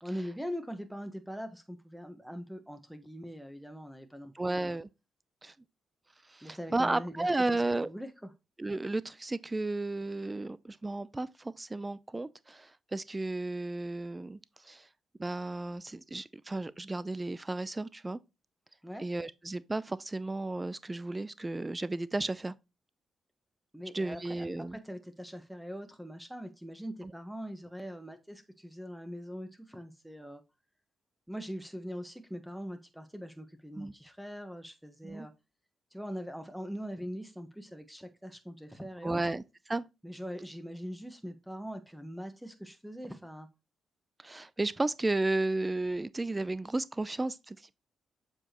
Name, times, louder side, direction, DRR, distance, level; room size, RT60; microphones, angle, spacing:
voice 1, 0.0-4.8 6.4-7.5 7.8-8.3 18.8-19.1 23.7-30.4 31.3-35.3 35.9-39.2 40.0-43.5, equal, 5° right, 1.2 m, -42 dB
voice 2, 4.3-4.9 5.4-5.5 6.3-7.9 8.6-14.4 14.6-14.9 15.2-18.2 19.0-22.5 23.9-24.8 33.8-33.9 35.0-35.3 39.0-39.8 44.2-47.7, right 2 dB, 25° right, 0.5 m, -33 dB
7.6 x 4.8 x 3.0 m
supercardioid pair, 55°, 0 cm